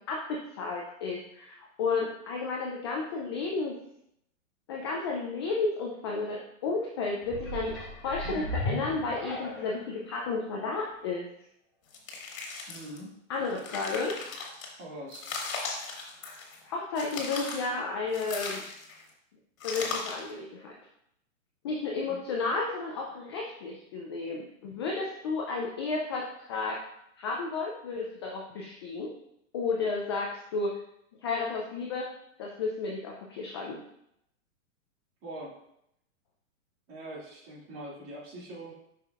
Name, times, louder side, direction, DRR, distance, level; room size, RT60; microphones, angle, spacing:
voice 1, 0.1-3.8 4.7-7.8 8.0-11.3 13.3-14.2 16.6-18.6 19.6-20.7 21.6-26.8 27.2-29.1 29.5-30.7 31.2-32.1 32.4-33.8, left 4 dB, 20° left, -1 dB, 0.3 m, -32 dB
sound 1, 7.2-9.9 10.5-10.6, left 1 dB, ahead, 2.5 m, -36 dB
sound 2, 11.9-13.0 13.4-14.7 15.1-16.6 17.0-17.7 18.1-19.0 19.6-20.3, left 4 dB, 70° left, 1.8 m, -37 dB
voice 2, 12.7-13.1 14.8-15.2 22.1-22.2 35.2-35.5 36.9-38.7, right 1 dB, 35° right, -4 dB, 2.4 m, -42 dB
7.2 x 5.8 x 2.4 m, 0.78 s
hypercardioid pair, 135°, 41 cm